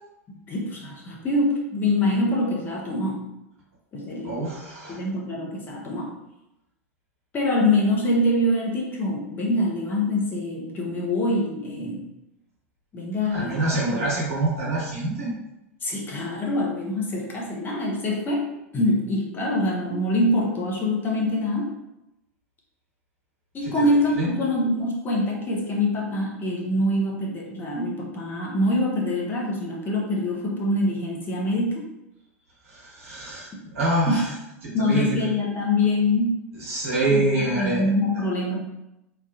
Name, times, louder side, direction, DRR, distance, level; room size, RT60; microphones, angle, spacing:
voice 1, 0.5-3.3 3.9-4.4 4.9-6.1 7.3-12.1 12.9-14.0 15.8-21.8 23.5-31.8 34.1-34.2 34.7-36.4 37.1-38.6, left 1 dB, 25° left, -3 dB, 0.8 m, -25 dB
voice 2, 4.2-5.0 13.3-15.3 23.8-23.9 24.2-24.3 32.6-34.3 34.6-35.2 36.5-37.9, right 2 dB, 70° right, -6 dB, 1.3 m, -26 dB
3.1 x 2.4 x 2.4 m, 0.89 s
figure-of-eight pair, 85°, 8 cm